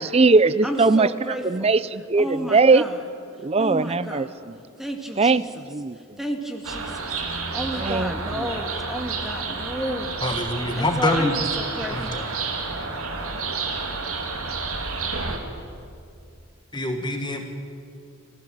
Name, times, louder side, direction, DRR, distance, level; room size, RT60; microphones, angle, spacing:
voice 1, 0.0-2.8 3.4-4.5 5.2-6.0 7.8-8.5, right 3 dB, 25° right, 17 dB, 0.5 m, -20 dB
voice 2, 0.6-1.7 2.2-3.0 3.6-4.3 4.8-5.5 6.2-7.0 7.5-10.1 10.7-12.2, right 1 dB, ahead, 3 dB, 1.8 m, -31 dB
sound 1, 6.6-15.4, right 4 dB, 75° right, 2.7 m, -30 dB
voice 3, 10.2-11.4 11.9-12.3 16.7-17.4, left 1 dB, 20° left, 4 dB, 1.5 m, -25 dB
29.5 x 15.0 x 7.6 m, 2.5 s
head